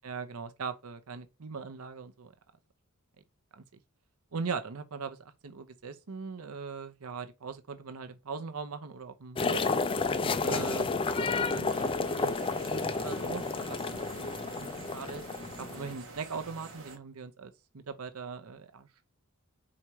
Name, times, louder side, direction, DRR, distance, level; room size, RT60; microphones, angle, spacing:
voice 1, 0.0-2.3 3.5-3.6 4.3-9.6 10.4-15.3 15.6-18.9, right 5 dB, 75° right, 0.7 m, -40 dB
sound 1, 9.4-15.9, left 4 dB, 25° left, 0.4 m, -31 dB
sound 2, 11.6-17.0, right 3 dB, 60° right, 1.3 m, -47 dB
4.8 x 4.3 x 4.6 m
head